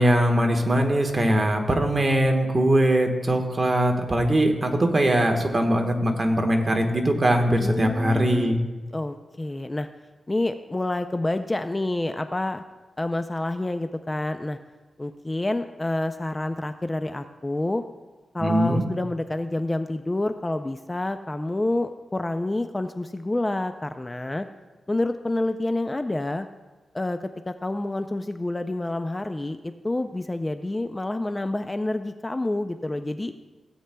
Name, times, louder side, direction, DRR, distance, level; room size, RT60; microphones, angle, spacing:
voice 1, 0.0-8.6 18.4-18.8, right 1 dB, 30° right, 3 dB, 1.3 m, -21 dB
voice 2, 7.6-8.6 8.9-9.9 10.3-12.6 13.0-14.6 15.0-17.8 18.3-24.5 24.9-26.5 26.9-33.3, left 2 dB, 20° left, 9 dB, 0.4 m, -28 dB
16.5 x 8.7 x 2.2 m, 1.2 s
wide cardioid pair, 90°, 0 cm